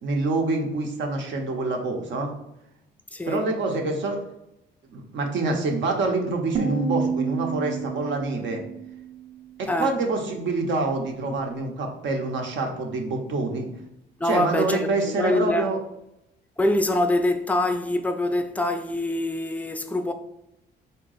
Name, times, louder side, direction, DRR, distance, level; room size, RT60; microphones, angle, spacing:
voice 1, 0.0-2.3 3.3-4.2 4.9-8.6 9.6-13.7 14.2-15.8, right 3 dB, 70° right, 0.8 m, -26 dB
voice 2, 3.1-3.4 9.7-9.9 14.2-15.7 16.6-20.1, left 1 dB, 5° left, 0.4 m, -24 dB
sound 1, 6.5-9.5, right 5 dB, 25° right, 0.7 m, -30 dB
3.8 x 2.2 x 3.9 m
cardioid pair, 90°, 20 cm